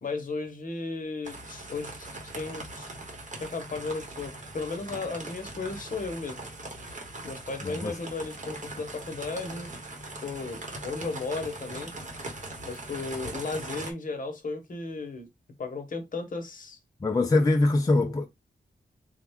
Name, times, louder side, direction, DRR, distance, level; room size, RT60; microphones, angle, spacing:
voice 1, 0.0-2.9 3.4-6.4 7.2-9.7 10.2-11.9 12.7-15.3 15.6-16.8, left 3 dB, 45° left, 0.8 m, -35 dB
sound 1, 1.2-13.9, right 2 dB, 40° right, 1.0 m, -40 dB
voice 2, 7.6-8.0 17.0-18.3, left 2 dB, 20° left, 0.4 m, -23 dB
3.5 x 2.2 x 3.4 m
wide cardioid pair, 140°, 18 cm